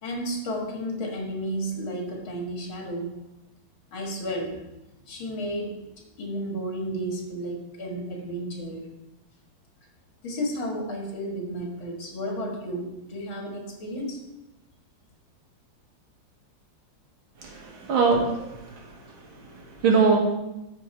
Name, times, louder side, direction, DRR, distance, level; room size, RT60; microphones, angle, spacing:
voice 1, 0.0-3.1 3.9-4.6 5.1-5.8 6.2-8.9 10.2-14.2, equal, 75° left, 1 dB, 2.6 m, -32 dB
voice 2, 17.4-19.2 19.5-20.2, right 5 dB, 75° right, 0 dB, 2.4 m, -23 dB
13.0 x 4.6 x 4.4 m, 0.93 s
omnidirectional pair, 2.2 m